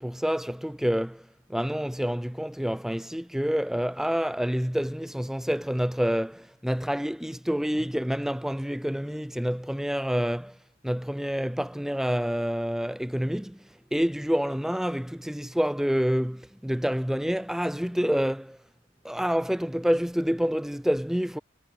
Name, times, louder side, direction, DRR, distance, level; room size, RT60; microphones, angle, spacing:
voice 1, 0.0-10.6 10.8-13.6 13.9-18.6 19.0-21.4, equal, ahead, 0.4 m, -28 dB
head